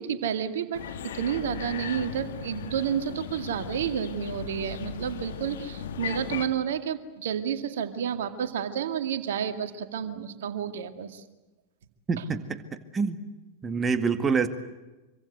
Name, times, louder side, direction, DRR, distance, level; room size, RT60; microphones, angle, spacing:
voice 1, 0.0-11.2, right 8 dB, 60° right, 8 dB, 2.2 m, -30 dB
sound 1, 0.7-6.5, left 8 dB, 60° left, 2.4 m, -37 dB
voice 2, 12.1-12.6 12.9-13.2 13.6-14.5, right 5 dB, 20° right, 10 dB, 2.0 m, -26 dB
26.5 x 24.5 x 8.1 m, 1.1 s
figure-of-eight pair, 90°, 0 cm